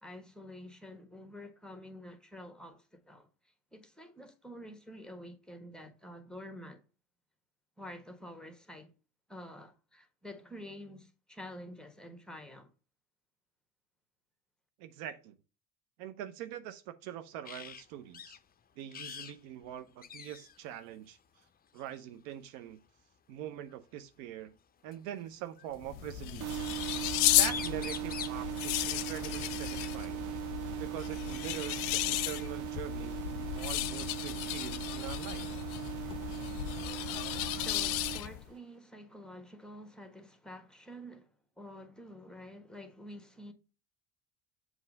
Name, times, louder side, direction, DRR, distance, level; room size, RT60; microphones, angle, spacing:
voice 1, 0.0-3.3 3.7-6.8 7.8-8.9 9.3-12.7 37.5-43.5, left 1 dB, ahead, 1.3 m, -48 dB
voice 2, 14.8-15.3 16.0-18.4 18.8-21.2 21.7-22.8 23.3-24.5 24.8-26.7 27.4-30.2 30.8-35.4, right 11 dB, 65° right, 0.9 m, -43 dB
sound 1, 17.4-17.8 18.1-18.4 18.9-19.4 19.6-19.7 20.0-20.6 21.8-22.0 23.7-23.8 24.9-25.8 27.1-27.2 27.4-28.5 30.4-30.5 30.9-31.9, left 8 dB, 20° left, 0.5 m, -44 dB
sound 2, 25.7-38.5, left 16 dB, 65° left, 0.6 m, -34 dB
sound 3, 26.4-38.2, right 14 dB, 45° right, 0.6 m, -39 dB
7.5 x 3.2 x 5.2 m
hypercardioid pair, 70°, 42 cm